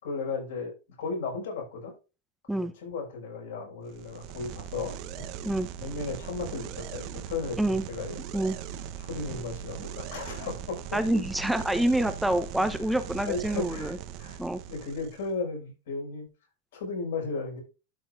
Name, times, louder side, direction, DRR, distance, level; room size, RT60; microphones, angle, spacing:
voice 1, 0.0-1.9 2.5-5.3 5.8-8.2 9.0-10.8 13.2-13.9 14.2-14.4 14.7-16.3 16.7-17.6, left 4 dB, 75° left, 1 dB, 5.6 m, -35 dB
sound 1, 3.9-15.3, right 9 dB, 55° right, 1.0 m, -40 dB
voice 2, 10.9-14.0 14.4-14.6, right 1 dB, 5° right, 10 dB, 0.9 m, -27 dB
12.5 x 6.3 x 2.6 m, 0.31 s
hypercardioid pair, 95°, 0 cm